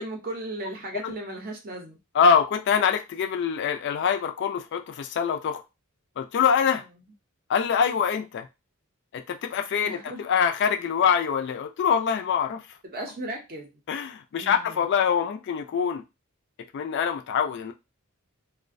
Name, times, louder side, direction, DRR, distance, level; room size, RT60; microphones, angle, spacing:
voice 1, 0.0-2.0 9.8-10.3 12.8-13.7 14.4-14.8, right 1 dB, 40° right, 0.5 m, -36 dB
voice 2, 2.1-5.6 6.2-6.8 7.5-8.5 9.1-12.6 13.9-16.0 16.7-17.7, left 7 dB, 55° left, 0.3 m, -24 dB
2.4 x 2.1 x 2.5 m
head